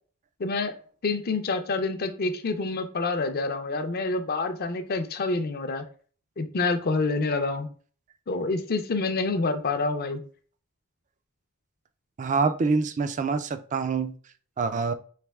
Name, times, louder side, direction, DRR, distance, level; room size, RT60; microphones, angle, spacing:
voice 1, 0.4-0.7 1.0-5.8 6.4-7.7 8.3-10.2, left 3 dB, 45° left, 0.5 m, -27 dB
voice 2, 12.2-14.1 14.6-14.9, right 4 dB, 35° right, 0.3 m, -25 dB
3.2 x 3.0 x 3.4 m
head